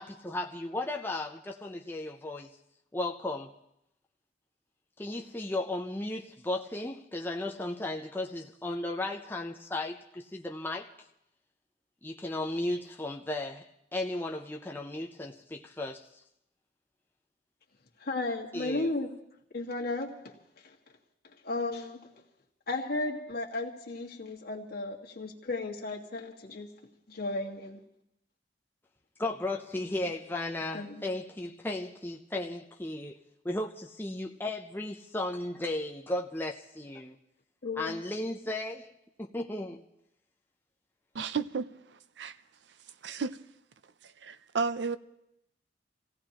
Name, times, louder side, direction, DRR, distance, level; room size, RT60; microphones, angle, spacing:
voice 1, 0.0-2.5 2.9-3.5 5.0-10.9 12.0-16.1 18.5-18.9 29.2-37.2 37.8-38.9 39.2-39.8, left 2 dB, 10° left, 0.5 m, -35 dB
voice 2, 18.0-19.1 19.5-20.3 20.6-20.7 21.4-22.1 22.7-26.7 27.1-27.8 30.7-31.0 37.6-38.0, left 2 dB, 55° left, 1.8 m, -34 dB
voice 3, 41.1-42.4 43.0-43.4 44.2-45.0, right 5 dB, 70° right, 0.5 m, -33 dB
27.5 x 16.5 x 2.9 m
head